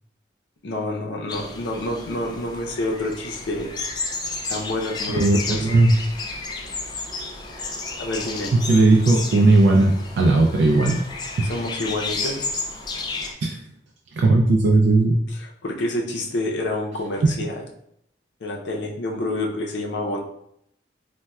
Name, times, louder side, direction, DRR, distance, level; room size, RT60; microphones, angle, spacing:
voice 1, 0.6-3.7 4.5-5.2 5.5-5.7 8.0-8.5 11.4-12.4 15.3-17.6 18.4-20.2, left 1 dB, 85° left, 0 dB, 0.6 m, -28 dB
sound 1, 1.3-13.3, left 3 dB, 25° left, 0.3 m, -32 dB
voice 2, 5.1-5.9 8.5-11.0 11.4-11.5 13.4-13.6 14.2-15.2 17.2-17.3, right 2 dB, 80° right, 1 dB, 0.3 m, -17 dB
4.1 x 2.2 x 2.3 m, 0.74 s
head